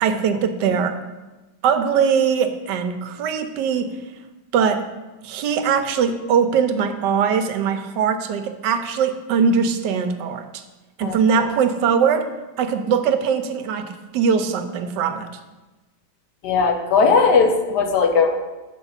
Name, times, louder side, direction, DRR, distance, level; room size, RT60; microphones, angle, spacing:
voice 1, 0.0-1.0 1.6-4.0 4.5-4.9 5.2-10.6 11.0-12.3 12.6-15.3, right 6 dB, 80° right, 8 dB, 1.3 m, -21 dB
voice 2, 11.0-11.5 16.4-18.4, left 5 dB, 70° left, 5 dB, 1.3 m, -18 dB
7.0 x 5.0 x 5.6 m, 1.1 s
omnidirectional pair, 1.9 m